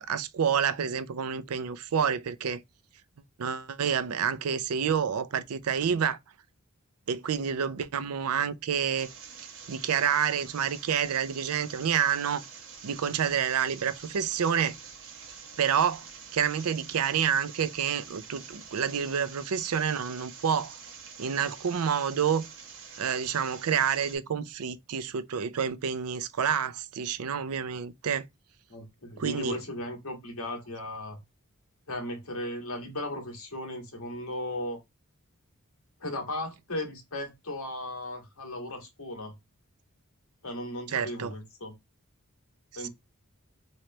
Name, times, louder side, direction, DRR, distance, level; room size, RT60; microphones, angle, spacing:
voice 1, 0.0-2.6 3.4-6.2 7.1-9.1 9.7-12.4 12.8-14.8 15.6-16.0 16.3-20.8 21.2-22.5 23.0-28.3 29.2-29.6 40.9-41.3 42.8-42.9, right 7 dB, 80° right, 0.5 m, -28 dB
sound 1, 9.0-24.2, right 6 dB, 60° right, 1.0 m, -46 dB
voice 2, 28.7-31.2 31.9-34.8 36.0-39.3 40.4-41.7 42.7-42.9, left 1 dB, 70° left, 1.5 m, -36 dB
3.2 x 3.0 x 2.8 m
head